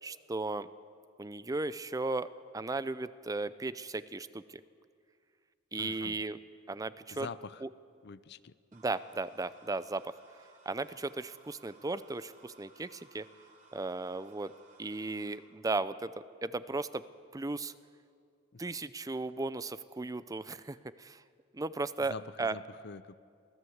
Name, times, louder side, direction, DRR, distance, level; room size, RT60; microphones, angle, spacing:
voice 1, 0.0-0.7 1.2-2.3 2.5-4.6 5.7-6.4 6.7-7.3 7.6-7.7 8.7-10.2 10.7-13.3 13.7-14.5 14.8-16.1 16.4-17.0 17.3-17.7 18.6-21.2 21.5-22.6, right 3 dB, 20° right, 15 dB, 0.5 m, -36 dB
voice 2, 5.8-6.2 7.1-7.6 8.0-8.5 18.5-18.6 22.1-23.1, left 5 dB, 55° left, 16 dB, 0.6 m, -45 dB
sound 1, 8.7-15.4, right 3 dB, 40° right, 3.7 m, -61 dB
24.0 x 16.0 x 8.0 m, 2.2 s
head